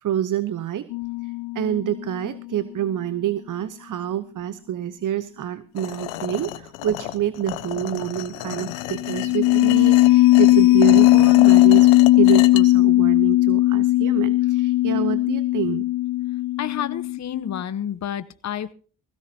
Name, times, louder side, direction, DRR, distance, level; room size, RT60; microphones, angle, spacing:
voice 1, 0.0-0.9 1.2-15.9, right 10 dB, 50° right, 14 dB, 1.0 m, -27 dB
sound 1, 0.9-2.1 8.9-17.6, left 17 dB, 60° left, 0.7 m, -17 dB
sound 2, 5.8-12.6, left 15 dB, 85° left, 1.1 m, -32 dB
voice 2, 16.6-18.7, left 10 dB, 40° left, 13 dB, 1.0 m, -29 dB
20.0 x 16.0 x 2.9 m, 0.39 s
hypercardioid pair, 60°, 40 cm